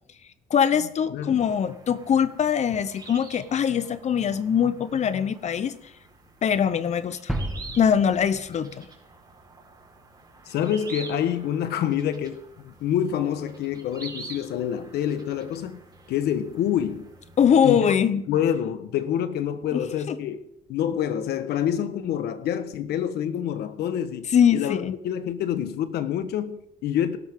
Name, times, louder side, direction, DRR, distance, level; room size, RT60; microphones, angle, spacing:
voice 1, 0.5-5.7 6.4-7.3 7.8-8.9 17.4-18.2 19.7-19.8 20.1-20.2 24.3-24.9, left 8 dB, 40° left, 1.0 m, -22 dB
voice 2, 1.1-1.4 10.5-15.8 16.1-17.1 17.6-17.8 18.3-20.4 20.7-27.2, left 9 dB, 75° left, 1.3 m, -27 dB
sound 1, 1.3-17.6, right 3 dB, 25° right, 4.5 m, -47 dB
sound 2, 7.3-9.4, right 1 dB, ahead, 1.5 m, -33 dB
18.5 x 12.5 x 3.8 m
cardioid pair, 110°, 17 cm